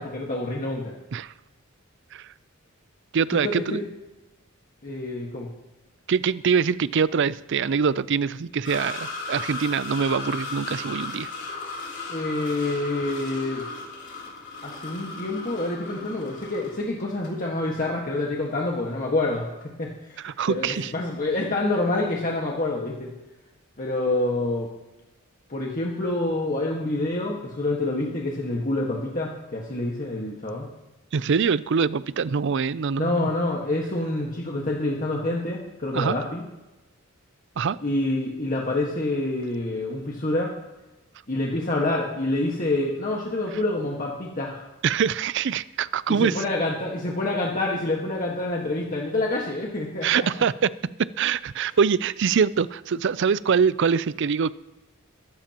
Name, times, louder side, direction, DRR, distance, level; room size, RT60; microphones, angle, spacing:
voice 1, 0.0-0.9 3.4-3.8 4.8-5.5 12.1-13.6 14.6-19.5 19.8-23.1 23.8-24.7 25.5-30.7 33.0-36.4 37.8-40.5 41.3-44.7 46.1-50.4, left 2 dB, 40° left, -2 dB, 1.6 m, -27 dB
voice 2, 3.1-3.8 6.1-11.3 20.2-20.9 31.1-33.3 35.9-36.2 37.6-37.8 44.8-46.4 50.0-50.7 51.2-54.5, right 6 dB, 55° right, 17 dB, 0.4 m, -24 dB
sound 1, 8.6-17.3 17.7-17.8 19.6-19.7, left 3 dB, 55° left, 3.6 m, -36 dB
22.5 x 12.0 x 3.0 m, 1.0 s
head